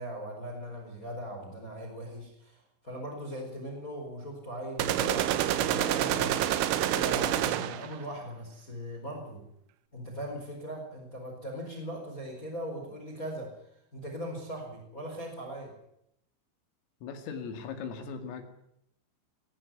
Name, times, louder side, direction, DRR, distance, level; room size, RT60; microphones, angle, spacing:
voice 1, 0.0-9.4 9.9-15.7, equal, 15° left, 3 dB, 4.3 m, -40 dB
sound 1, 4.8-7.9, right 12 dB, 80° right, 3.7 m, -27 dB
voice 2, 17.0-18.4, left 6 dB, 80° left, 6 dB, 5.1 m, -38 dB
20.0 x 14.5 x 9.7 m, 0.76 s
omnidirectional pair, 5.9 m